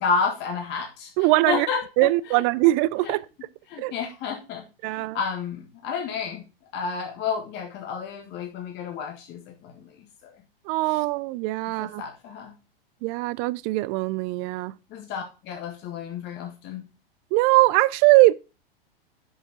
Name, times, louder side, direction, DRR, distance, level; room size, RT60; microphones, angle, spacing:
voice 1, 0.0-1.1 1.5-2.4 3.0-3.1 3.7-6.4 6.7-10.3 10.9-11.0 11.7-12.5 14.9-16.8, left 5 dB, 35° left, 1.6 m, -31 dB
voice 2, 1.2-1.7 2.0-3.2 3.8-3.9 4.8-5.2 10.7-12.0 13.0-14.7 17.3-18.3, right 20 dB, 35° right, 0.5 m, -21 dB
6.8 x 5.4 x 5.6 m
hypercardioid pair, 115°, 30 cm